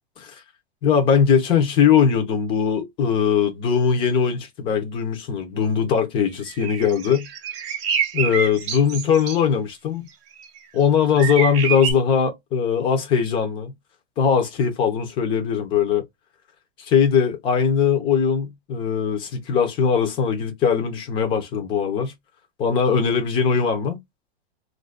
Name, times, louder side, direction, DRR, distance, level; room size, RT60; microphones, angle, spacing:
voice 1, 0.8-7.3 8.1-10.1 10.7-13.7 14.2-16.0 16.8-22.1 22.6-24.0, left 7 dB, 15° left, 0.5 m, -20 dB
sound 1, 6.5-9.4 10.4-10.6 11.2-11.9, right 7 dB, 30° right, 0.5 m, -27 dB
2.5 x 2.2 x 3.4 m
supercardioid pair, 160°, 32 cm